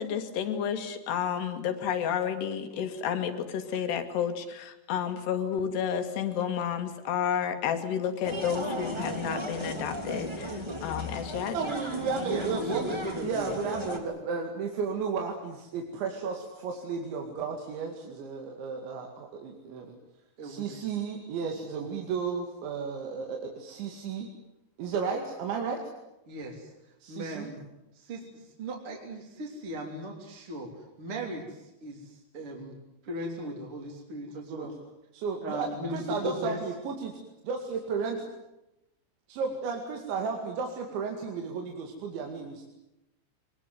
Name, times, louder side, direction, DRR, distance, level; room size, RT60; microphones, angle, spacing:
voice 1, 0.0-11.6, left 8 dB, 70° left, 8 dB, 4.0 m, -31 dB
sound 1, 8.2-14.0, equal, 10° right, 2.3 m, -35 dB
voice 2, 11.5-12.8 13.2-20.0 20.4-24.3 24.8-25.8 27.0-27.5 34.5-34.7 35.1-37.2 37.4-38.2 39.3-42.6, right 5 dB, 80° right, 2 dB, 4.6 m, -33 dB
voice 3, 12.2-13.5 20.4-20.8 26.3-26.7 27.1-27.6 27.9-32.8 33.0-34.7 35.4-36.6, right 1 dB, 30° right, -1 dB, 3.7 m, -37 dB
24.5 x 21.5 x 9.3 m, 0.91 s
omnidirectional pair, 5.2 m